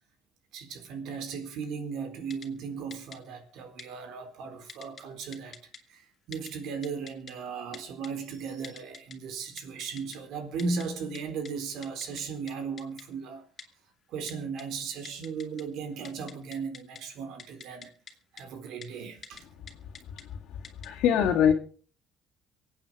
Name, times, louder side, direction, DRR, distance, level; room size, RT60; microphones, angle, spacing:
voice 1, 0.5-5.6 5.9-13.5 14.1-17.9 18.3-19.5, right 5 dB, 70° right, 4.0 m, -36 dB
Typing, 2.3-2.5 2.9-3.2 3.8-3.9 4.7-5.0 5.3-5.8 6.3-6.5 6.8-7.3 7.7-8.1 8.6-9.2 9.6-10.2 10.6-10.9 11.2-11.3 11.5-11.6 11.8-12.2 12.5-12.6 12.8-13.0 13.6-13.7 14.3-14.6 15.1-15.6 15.9-17.0 17.4-18.1 18.4-18.5 18.8-18.9 19.2-19.4 19.7-20.2 20.6-20.9, left 6 dB, 35° left, 2.5 m, -45 dB
voice 2, 20.8-21.5, left 9 dB, 70° left, 2.2 m, -23 dB
24.0 x 8.9 x 5.0 m
cardioid pair, 125°, 0 cm